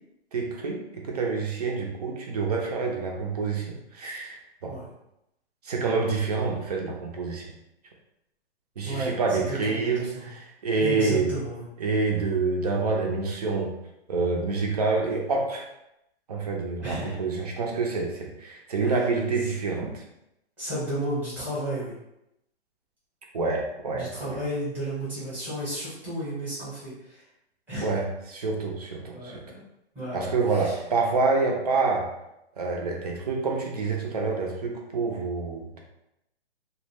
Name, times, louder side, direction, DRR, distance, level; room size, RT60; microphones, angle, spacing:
voice 1, 0.3-4.4 4.6-4.8 5.6-7.5 8.8-11.3 11.8-13.7 14.1-15.7 16.3-19.9 23.3-24.4 27.8-29.4 30.1-32.1 32.6-35.8, right 4 dB, 35° right, 0 dB, 0.4 m, -27 dB
voice 2, 8.8-9.2 9.5-10.3 10.8-11.7 16.8-17.1 18.8-18.9 20.6-21.9 23.9-27.2 27.7-28.0 29.1-29.6 29.9-30.3 30.5-30.8, right 1 dB, 5° right, -11 dB, 0.8 m, -33 dB
2.2 x 2.0 x 3.3 m, 0.85 s
hypercardioid pair, 155°, 33 cm